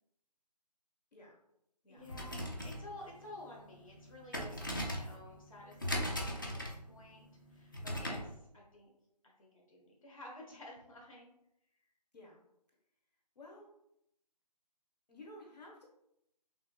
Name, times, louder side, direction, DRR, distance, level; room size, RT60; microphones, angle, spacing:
voice 1, 1.9-7.2 7.5-8.9 9.4-11.3, left 2 dB, 50° left, -2 dB, 1.2 m, -52 dB
sound 1, 2.0-8.3, equal, 30° left, 0.5 m, -40 dB
voice 2, 13.3-13.7 15.1-15.8, left 1 dB, 75° left, -1 dB, 1.1 m, -53 dB
5.8 x 2.8 x 2.3 m, 0.79 s
figure-of-eight pair, 170°, 21 cm